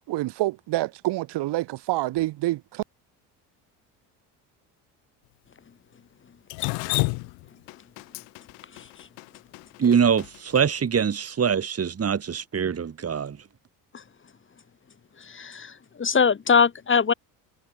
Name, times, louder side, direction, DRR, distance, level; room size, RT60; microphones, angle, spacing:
voice 1, 0.1-2.8, right 17 dB, 65° right, 2.0 m, -27 dB
Drip, 6.5-10.6, left 35 dB, 80° left, 1.1 m, -30 dB
voice 2, 9.8-13.4, right 7 dB, 35° right, 2.7 m, -23 dB
voice 3, 16.0-17.1, left 6 dB, 25° left, 1.7 m, -20 dB
supercardioid pair, 80°, 44 cm